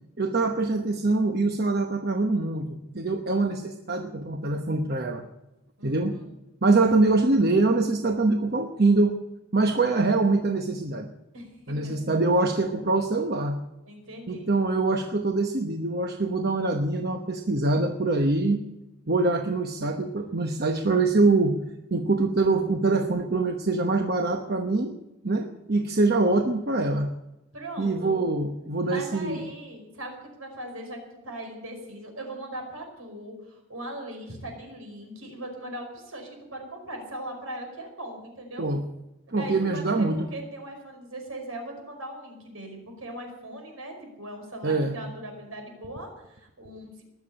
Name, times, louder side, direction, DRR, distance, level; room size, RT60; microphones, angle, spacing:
voice 1, 0.2-5.2 5.8-6.2 6.6-9.2 9.5-11.1 11.7-13.6 14.3-18.7 19.1-21.6 21.9-24.9 25.2-27.1 27.8-29.5 38.6-38.8 39.3-40.3 44.6-45.0, right 3 dB, 45° right, 5 dB, 1.0 m, -24 dB
voice 2, 3.2-3.5 5.8-6.3 11.3-12.0 13.9-14.5 25.7-25.9 27.5-28.3 28.8-38.7 39.3-47.0, right 1 dB, 70° right, 3 dB, 5.2 m, -40 dB
20.5 x 7.1 x 9.9 m, 0.94 s
head